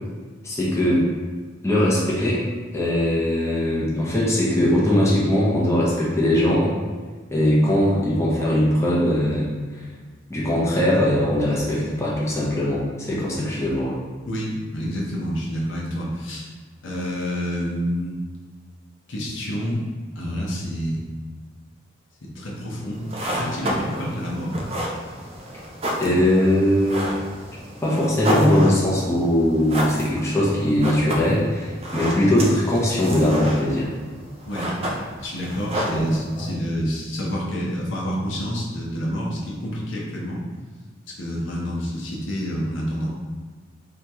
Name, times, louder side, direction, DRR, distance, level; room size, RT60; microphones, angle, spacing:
voice 1, 0.4-1.0 1.6-2.4 2.7-6.8 7.3-9.5 10.3-13.9 26.0-27.1 27.8-33.9 36.1-36.4, left 1 dB, 15° left, -6 dB, 0.6 m, -20 dB
voice 2, 14.3-16.5 16.8-18.2 19.1-19.8 20.1-21.0 22.3-24.6 34.4-40.4 41.2-43.1, equal, 75° left, -4 dB, 0.8 m, -28 dB
sound 1, 22.9-36.5, equal, 30° right, 0.5 m, -31 dB
2.9 x 2.9 x 3.5 m, 1.4 s
head